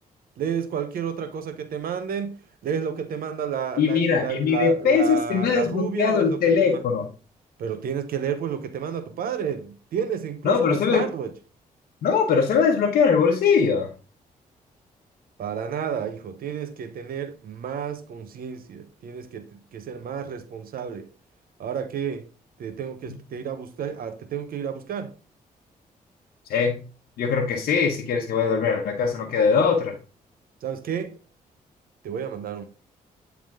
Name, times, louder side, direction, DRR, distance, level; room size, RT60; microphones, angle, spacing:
voice 1, 0.4-6.8 7.6-11.3 15.4-21.1 21.6-22.3 22.6-25.1 30.6-31.1 32.0-32.6, right 7 dB, 70° right, 0.9 m, -31 dB
voice 2, 3.8-7.1 10.4-11.1 12.0-13.9 23.1-23.2 26.5-26.8 27.2-30.0, left 6 dB, 75° left, 0.9 m, -21 dB
8.8 x 3.6 x 3.6 m
cardioid pair, 65°, 16 cm